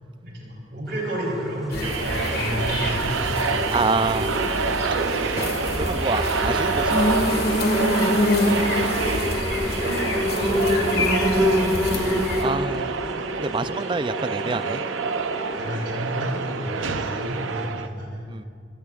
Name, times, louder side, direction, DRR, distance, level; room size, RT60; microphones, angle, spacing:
voice 1, 0.2-3.3 4.5-4.7 7.3-7.7 8.3-8.4 15.5-18.2, equal, 60° right, -3 dB, 3.8 m, -32 dB
sound 1, 0.9-17.7, left 1 dB, ahead, 2.0 m, -30 dB
sound 2, 1.7-12.4, left 1 dB, 55° left, 1.8 m, -26 dB
sound 3, 1.8-17.9, right 5 dB, 90° right, 0.6 m, -28 dB
voice 2, 2.7-3.1 3.7-4.3 5.7-7.4 10.2-11.1 12.4-12.9 13.4-14.8 18.3-18.4, right 3 dB, 25° right, 13 dB, 0.3 m, -28 dB
25.0 x 16.5 x 2.4 m, 2.3 s
head